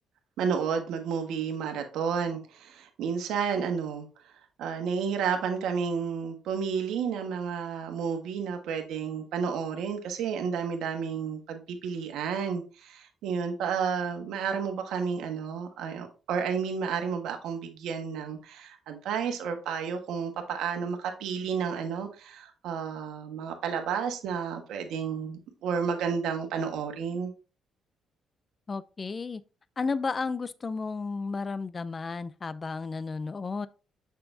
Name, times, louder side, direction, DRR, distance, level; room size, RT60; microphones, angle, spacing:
voice 1, 0.4-4.1 4.6-27.3, right 6 dB, 85° right, 1.4 m, -31 dB
voice 2, 28.7-29.4 29.8-33.7, left 4 dB, 35° left, 0.4 m, -33 dB
6.8 x 5.7 x 2.7 m
cardioid pair, 90°, 0 cm